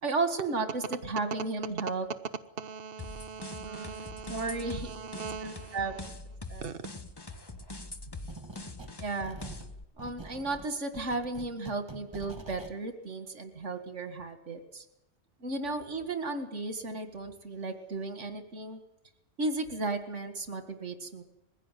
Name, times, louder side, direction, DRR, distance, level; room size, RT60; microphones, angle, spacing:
voice 1, 0.0-2.1 3.6-6.0 6.5-6.6 9.0-9.4 10.0-14.8 15.4-18.8 19.4-21.2, right 3 dB, 90° right, 8 dB, 2.3 m, -34 dB
voice 2, 2.6-6.1 6.6-6.8, right 6 dB, 55° right, 9 dB, 1.2 m, -42 dB
sound 1, 3.0-9.8, left 2 dB, 20° left, 1.2 m, -43 dB
sound 2, 8.3-9.0 9.2-12.8, right 2 dB, 20° right, 1.6 m, -46 dB
21.5 x 16.0 x 9.3 m, 0.86 s
omnidirectional pair, 1.2 m